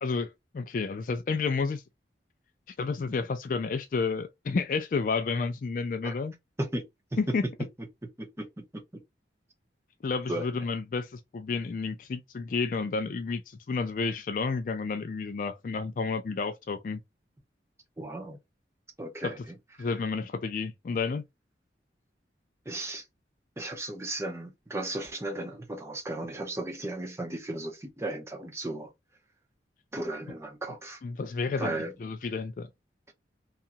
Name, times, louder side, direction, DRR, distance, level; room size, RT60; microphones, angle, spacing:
voice 1, 0.0-1.8 2.8-6.3 7.2-7.4 10.0-17.0 19.2-19.3 19.8-21.2 31.0-32.7, left 4 dB, 45° left, 0.3 m, -31 dB
voice 2, 8.2-8.8 10.3-10.5 18.0-18.4 19.0-19.4 22.7-23.0 23.6-28.9 29.9-31.0 31.6-31.9, right 1 dB, 15° right, 0.6 m, -35 dB
2.8 x 2.4 x 2.5 m
head